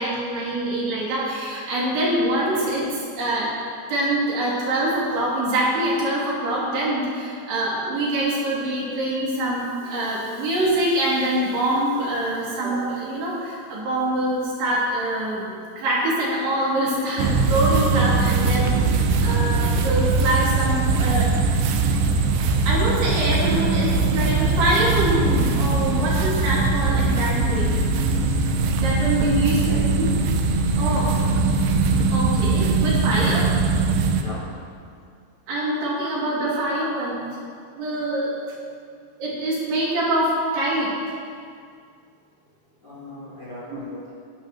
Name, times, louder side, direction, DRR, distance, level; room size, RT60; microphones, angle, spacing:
voice 1, 0.0-3.5 3.9-21.3 22.7-27.7 28.8-30.2 30.8-31.1 32.1-33.5 35.5-37.3 37.8-38.4 39.2-40.9 43.7-43.8, right 1 dB, 60° right, -6 dB, 4.3 m, -24 dB
sound 1, 17.2-34.2, right 3 dB, 80° right, 2.4 m, -21 dB
voice 2, 29.6-30.1 30.7-31.3 34.2-34.4 42.8-44.1, left 1 dB, 35° left, -9 dB, 2.5 m, -39 dB
18.0 x 12.0 x 3.0 m, 2.3 s
omnidirectional pair, 5.6 m